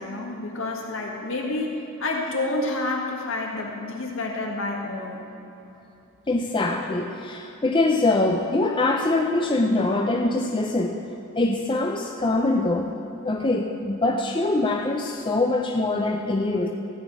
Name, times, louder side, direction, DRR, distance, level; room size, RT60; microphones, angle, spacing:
voice 1, 0.0-5.2, left 2 dB, 65° left, 0 dB, 1.8 m, -29 dB
voice 2, 6.3-11.0 11.4-12.9 13.2-16.7, left 2 dB, 20° left, 2 dB, 0.5 m, -23 dB
15.0 x 6.0 x 8.4 m, 3.0 s
head